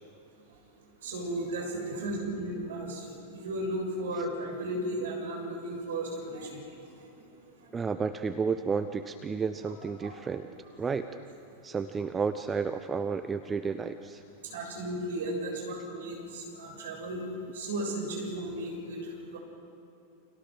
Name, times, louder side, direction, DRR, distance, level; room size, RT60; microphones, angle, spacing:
voice 1, 1.0-6.6 10.0-10.1 14.4-17.2 17.5-19.4, right 1 dB, 60° right, 1 dB, 7.0 m, -35 dB
voice 2, 7.7-10.5 10.8-11.1 11.6-14.2, right 5 dB, 15° right, 9 dB, 1.0 m, -31 dB
30.0 x 27.5 x 6.3 m, 2.8 s
figure-of-eight pair, 90°, 0 cm